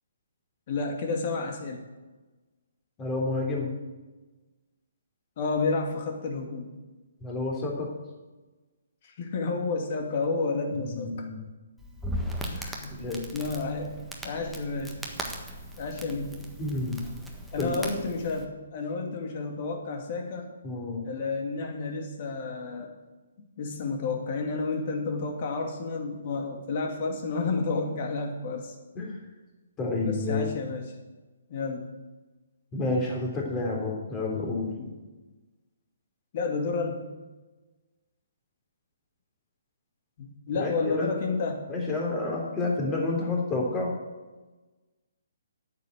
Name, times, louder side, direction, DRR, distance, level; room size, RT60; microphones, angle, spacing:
voice 1, 0.7-1.8 5.4-6.7 9.2-11.3 12.4-13.0 13.3-14.0 14.2-14.9 15.8-16.4 17.5-20.5 21.0-22.9 23.6-28.7 30.0-30.8 31.5-31.9 34.8-34.9 36.3-37.1 40.2-41.7, left 4 dB, 45° left, 3 dB, 2.4 m, -31 dB
voice 2, 3.0-3.7 7.2-7.9 10.7-11.4 12.9-13.2 16.6-17.0 17.6-17.7 20.6-21.0 28.9-29.2 29.8-30.6 32.7-34.7 40.5-41.1 41.7-43.9, left 3 dB, 20° left, -1 dB, 3.4 m, -29 dB
Crackle, 11.8-18.4, equal, ahead, 1.5 m, -38 dB
9.4 x 7.7 x 8.9 m, 1.2 s
figure-of-eight pair, 135°, 0 cm